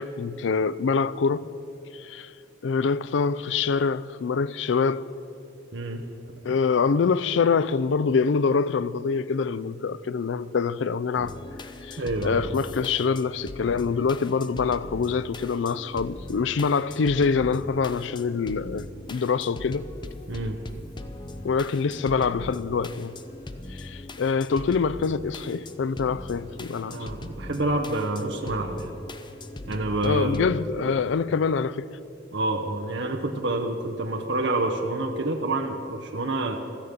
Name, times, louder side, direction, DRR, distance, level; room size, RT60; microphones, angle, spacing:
voice 1, 0.0-1.4 1.9-2.3 2.6-5.1 6.4-11.4 11.8-19.9 21.4-23.1 23.7-27.0 30.0-31.9, left 5 dB, 70° left, 0.4 m, -25 dB
voice 2, 5.7-6.1 12.0-12.4 20.3-20.6 26.8-29.0 29.7-30.4 32.3-36.6, right 2 dB, 65° right, 0.9 m, -28 dB
sound 1, 11.1-30.6, left 2 dB, 25° left, 0.6 m, -40 dB
16.5 x 13.0 x 5.2 m
head